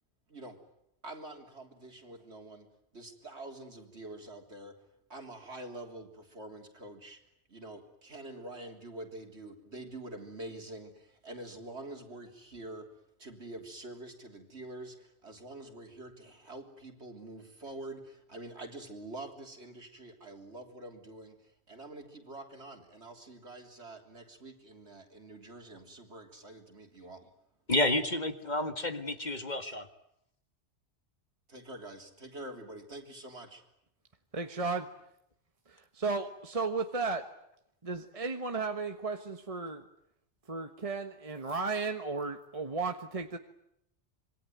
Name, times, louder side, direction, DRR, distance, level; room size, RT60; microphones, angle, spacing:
voice 1, 0.3-0.6 1.0-4.8 5.1-7.2 7.5-27.3 31.5-33.6, right 2 dB, 70° right, 4 dB, 3.8 m, -46 dB
voice 2, 27.7-29.9, left 2 dB, 40° left, 8 dB, 1.8 m, -30 dB
voice 3, 34.3-34.8 35.7-37.3 37.8-39.8 40.5-43.4, right 4 dB, 30° right, 6 dB, 1.4 m, -34 dB
26.0 x 23.0 x 9.3 m, 0.76 s
omnidirectional pair, 1.2 m